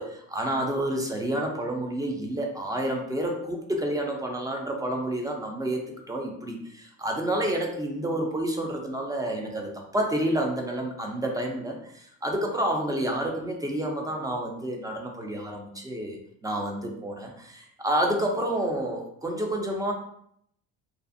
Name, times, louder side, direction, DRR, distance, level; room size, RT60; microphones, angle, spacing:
voice 1, 0.3-19.9, right 1 dB, 10° right, 1 dB, 0.3 m, -29 dB
2.5 x 2.4 x 2.5 m, 0.69 s
cardioid pair, 115°, 35 cm